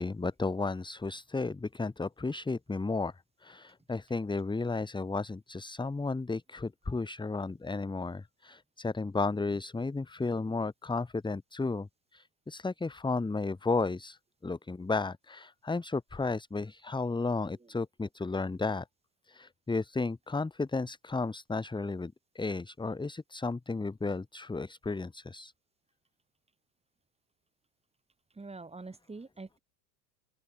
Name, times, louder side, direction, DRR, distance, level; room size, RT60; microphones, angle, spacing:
voice 1, 0.0-3.1 3.4-11.9 12.1-18.8 19.3-25.5, left 3 dB, 10° left, 1.9 m, -33 dB
voice 2, 28.3-29.6, right 3 dB, 10° right, 6.1 m, -45 dB
open air
supercardioid pair, 105°, 49 cm